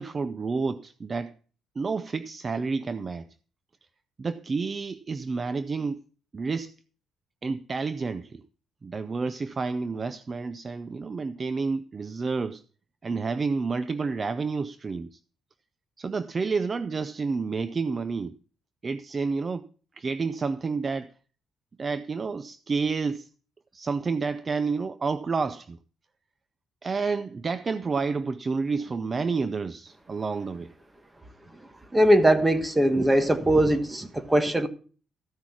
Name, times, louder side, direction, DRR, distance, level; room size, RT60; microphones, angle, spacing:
voice 1, 0.0-1.4 1.8-3.3 4.2-6.0 6.3-6.7 7.4-8.4 8.8-12.6 13.0-15.2 16.0-18.4 18.8-19.7 19.9-21.1 21.8-23.3 23.7-25.8 26.8-30.7, right 4 dB, 35° right, 0.5 m, -29 dB
voice 2, 31.9-34.7, right 1 dB, 15° right, 1.4 m, -21 dB
14.5 x 6.2 x 5.9 m
cardioid pair, 90°, 0 cm